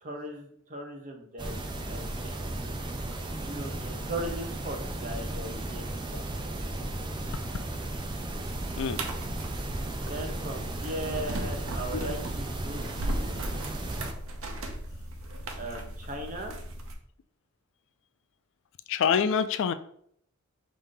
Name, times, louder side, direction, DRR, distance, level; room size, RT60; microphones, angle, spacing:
voice 1, 0.0-2.4 3.4-5.8 10.0-13.7 15.6-16.6, right 1 dB, 40° right, 3 dB, 0.8 m, -38 dB
sound 1, 1.4-14.1, right 1 dB, 20° right, 0.5 m, -35 dB
sound 2, 7.9-16.9, right 1 dB, 70° right, 0.7 m, -37 dB
voice 2, 18.9-19.7, left 7 dB, 60° left, 12 dB, 0.3 m, -27 dB
5.1 x 2.7 x 3.7 m, 0.66 s
head